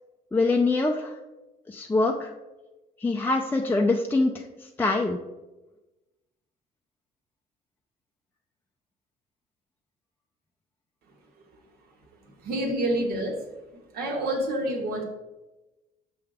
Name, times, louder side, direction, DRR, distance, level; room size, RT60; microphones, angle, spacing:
voice 1, 0.3-1.1 1.7-2.3 3.0-4.4 4.8-5.2, left 3 dB, 10° left, 1 dB, 0.6 m, -24 dB
voice 2, 12.2-13.4 13.9-15.0, right 1 dB, 65° right, 1 dB, 1.7 m, -28 dB
6.7 x 5.8 x 3.6 m, 1.1 s
cardioid pair, 110°, 17 cm